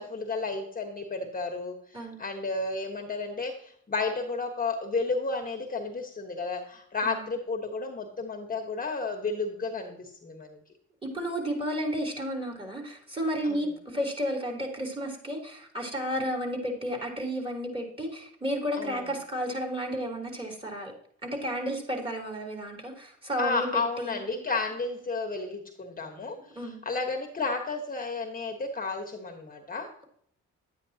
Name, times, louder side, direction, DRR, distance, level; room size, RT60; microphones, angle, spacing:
voice 1, 0.0-10.6 13.4-13.7 18.8-19.1 23.4-29.9, left 3 dB, 30° left, 3 dB, 1.3 m, -32 dB
voice 2, 11.0-20.9 21.2-23.7 24.0-24.4 26.1-26.2 26.5-26.8, equal, 20° right, 0 dB, 3.3 m, -32 dB
10.5 x 9.1 x 2.8 m, 0.65 s
cardioid pair, 90°, 30 cm